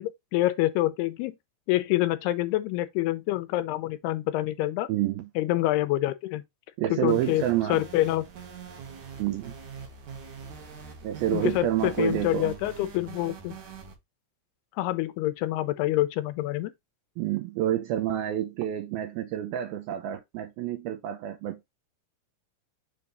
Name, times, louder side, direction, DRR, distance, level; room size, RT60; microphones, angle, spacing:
voice 1, 0.0-1.4 1.7-4.9 5.4-6.4 6.9-7.4 7.7-8.3 11.3-13.6 14.8-16.7, left 16 dB, 80° left, 2.5 m, -26 dB
voice 2, 4.9-5.3 6.8-7.8 9.2-9.6 11.0-12.6 17.2-21.7, right 12 dB, 75° right, 2.3 m, -28 dB
sound 1, 7.1-13.9, right 6 dB, 60° right, 2.3 m, -44 dB
6.9 x 3.6 x 4.0 m
omnidirectional pair, 4.7 m